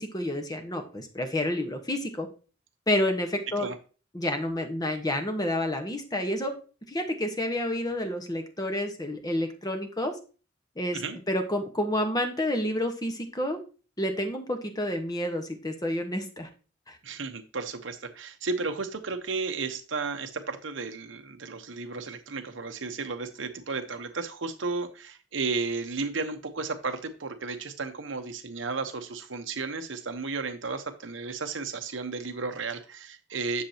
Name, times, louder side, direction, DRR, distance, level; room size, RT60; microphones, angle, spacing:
voice 1, 0.0-2.3 2.9-3.7 4.1-6.5 6.9-10.1 10.8-11.0 11.3-13.6 14.0-16.5 16.9-17.0, left 1 dB, 20° left, 5 dB, 1.2 m, -29 dB
voice 2, 17.0-33.6, right 4 dB, 80° right, 8 dB, 1.0 m, -33 dB
10.0 x 6.6 x 2.9 m, 0.36 s
head